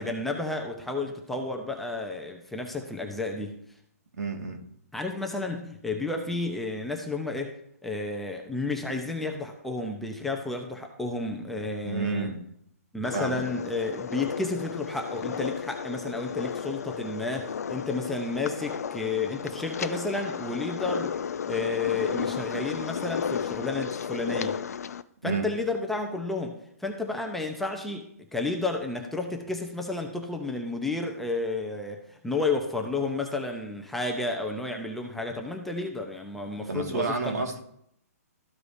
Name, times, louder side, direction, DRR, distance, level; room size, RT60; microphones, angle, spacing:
voice 1, 0.0-3.6 4.9-7.6 7.8-12.3 12.9-21.1 21.4-24.6 25.2-37.3, left 3 dB, 5° left, 2 dB, 0.7 m, -31 dB
voice 2, 4.2-4.6 11.8-12.4 13.1-13.4 25.2-25.5 36.7-37.6, right 3 dB, 85° right, 3 dB, 1.9 m, -30 dB
sound 1, 13.0-25.0, left 7 dB, 75° left, 0.5 m, -34 dB
13.5 x 4.8 x 2.7 m, 0.72 s
hypercardioid pair, 155°, 9 cm